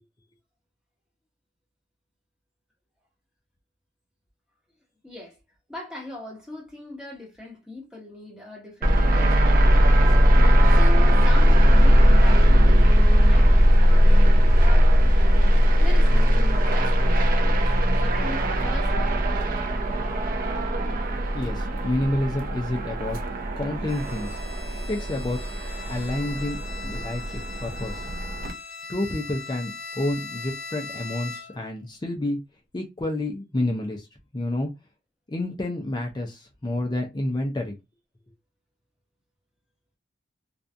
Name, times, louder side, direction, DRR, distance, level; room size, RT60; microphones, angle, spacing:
voice 1, 5.0-5.4 5.7-15.4 15.8-19.1 27.2-27.3, left 1 dB, 5° right, 1.0 m, -40 dB
sound 1, 8.8-28.5, equal, 45° right, 0.4 m, -19 dB
voice 2, 21.3-23.2 23.6-24.4 24.9-25.4 25.8-26.6 26.8-28.0 28.9-32.4 32.7-34.1 34.3-34.7 35.3-37.8, left 1 dB, 20° left, 0.4 m, -29 dB
Bowed string instrument, 23.9-31.7, left 4 dB, 45° left, 0.9 m, -39 dB
2.5 x 2.2 x 2.5 m
head